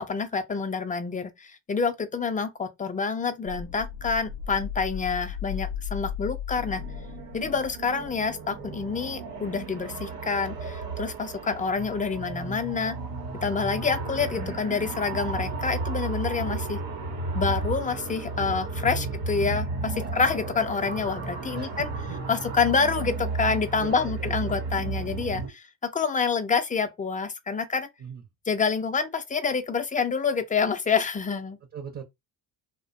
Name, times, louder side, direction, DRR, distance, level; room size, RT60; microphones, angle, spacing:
voice 1, 0.0-6.8 7.3-13.0 13.4-16.8 17.3-21.9 22.3-27.9 28.5-31.6, left 5 dB, 20° left, 0.4 m, -27 dB
sound 1, 3.5-8.3, left 8 dB, 85° left, 0.5 m, -36 dB
sound 2, 6.6-25.5, right 3 dB, 90° right, 0.9 m, -33 dB
voice 2, 18.8-19.1 19.9-20.1 21.5-21.8 23.8-24.6 28.0-28.2 31.7-32.0, right 7 dB, 40° right, 0.7 m, -39 dB
2.6 x 2.1 x 2.5 m
supercardioid pair, 80°, 44 cm